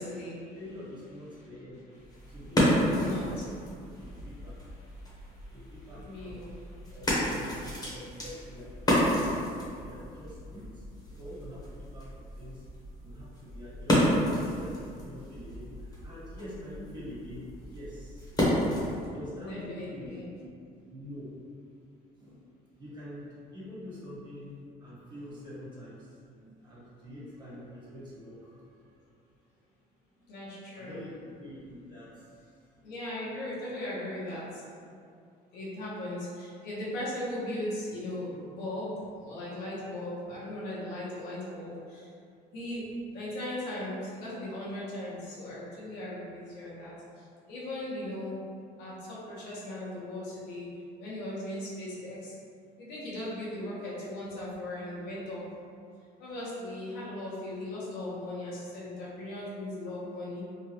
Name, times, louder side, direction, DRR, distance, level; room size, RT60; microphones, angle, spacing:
voice 1, 0.0-0.4 2.1-2.3 2.8-3.4 4.0-4.3 4.8-7.0 19.4-20.2 30.3-31.0 32.8-34.6 35.5-42.1 42.5-46.9 47.5-48.4 48.8-50.7 51.0-52.4 52.8-55.4 56.2-60.4, left 1 dB, 90° left, -7 dB, 1.1 m, -38 dB
voice 2, 0.5-1.9 2.3-3.3 3.8-4.7 5.5-6.5 6.9-9.1 9.5-12.6 13.0-18.3 18.8-20.1 20.4-20.5 20.9-21.3 22.1-22.4 22.8-29.1 30.1-30.5 30.8-33.0, left 1 dB, 25° right, -8 dB, 1.4 m, -46 dB
sound 1, 2.0-19.1, equal, 20° left, 0.9 m, -31 dB
3.6 x 2.4 x 2.9 m, 2.4 s
cardioid pair, 110°, 17 cm